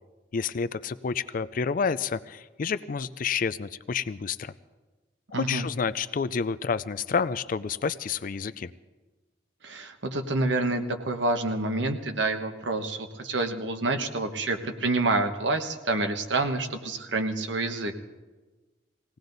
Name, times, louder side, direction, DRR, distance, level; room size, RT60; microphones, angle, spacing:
voice 1, 0.3-4.5 5.3-8.7, left 5 dB, 50° left, 16 dB, 0.4 m, -29 dB
voice 2, 5.3-5.7 9.6-17.9, right 2 dB, 80° right, 6 dB, 1.2 m, -28 dB
20.0 x 17.5 x 4.0 m, 1.2 s
head